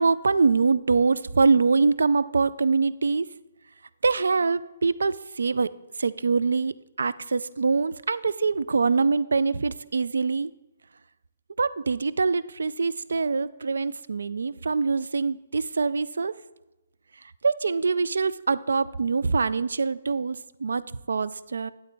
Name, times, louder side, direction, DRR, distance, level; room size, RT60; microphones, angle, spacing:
voice 1, 0.0-3.3 4.0-5.7 6.0-10.5 11.6-16.4 17.2-21.7, right 4 dB, 80° right, 16 dB, 0.3 m, -24 dB
8.6 x 8.3 x 3.5 m, 1.0 s
hypercardioid pair, 145°, 0 cm